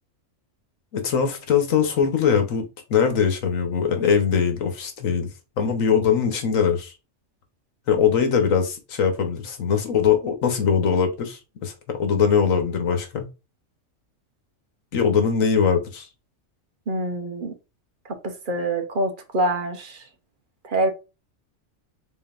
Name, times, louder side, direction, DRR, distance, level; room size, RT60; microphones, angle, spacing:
voice 1, 0.9-5.3 5.6-6.9 7.9-13.3 14.9-16.1, left 7 dB, 85° left, 1.4 m, -21 dB
voice 2, 16.9-17.5 18.0-20.0 20.6-20.9, right 1 dB, 45° right, 1.1 m, -25 dB
3.9 x 3.9 x 2.4 m
omnidirectional pair, 1.3 m